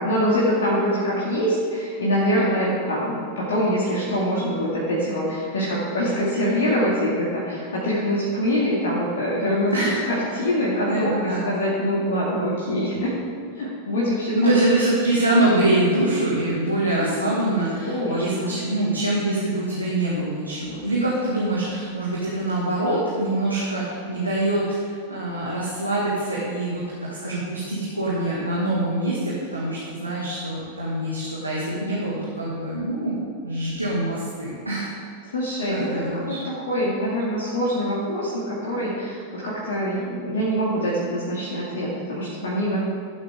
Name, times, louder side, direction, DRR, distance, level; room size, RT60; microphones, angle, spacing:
voice 1, 0.0-9.7 10.0-13.1 13.6-14.5 17.0-17.1 17.8-18.6 35.3-42.8, equal, 65° left, -6 dB, 2.0 m, -24 dB
voice 2, 10.9-11.5 14.3-33.1 33.4-35.0 35.7-36.4, right 1 dB, 85° right, -7 dB, 1.8 m, -24 dB
14.5 x 7.8 x 3.5 m, 2.3 s
figure-of-eight pair, 90°, 0 cm